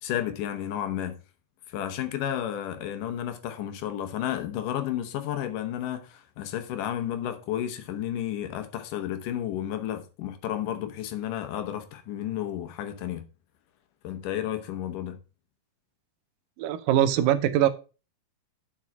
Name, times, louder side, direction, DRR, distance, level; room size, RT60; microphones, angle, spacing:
voice 1, 0.0-1.2 1.7-13.3 14.0-15.2, left 11 dB, 75° left, 2.5 m, -32 dB
voice 2, 16.6-17.7, right 11 dB, 85° right, 2.5 m, -22 dB
7.5 x 5.5 x 5.9 m
omnidirectional pair, 3.9 m